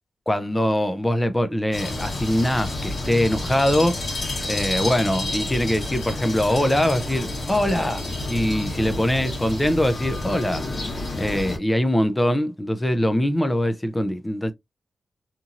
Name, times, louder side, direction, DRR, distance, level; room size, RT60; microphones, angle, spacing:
voice 1, 0.3-4.0 4.5-14.5, left 1 dB, 10° left, 0.4 m, -23 dB
sound 1, 1.7-11.6, left 2 dB, 55° left, 1.3 m, -30 dB
2.9 x 2.6 x 2.4 m
wide cardioid pair, 125°, 0 cm